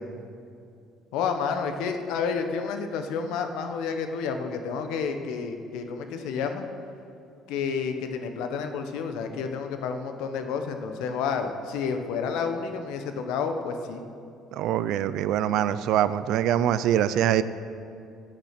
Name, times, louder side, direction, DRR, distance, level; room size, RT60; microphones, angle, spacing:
voice 1, 1.1-6.6 7.5-14.0, left 5 dB, 80° left, 6 dB, 1.0 m, -30 dB
voice 2, 14.5-17.4, right 11 dB, 60° right, 14 dB, 0.4 m, -24 dB
17.5 x 6.5 x 5.9 m, 2.5 s
cardioid pair, 170°, 0 cm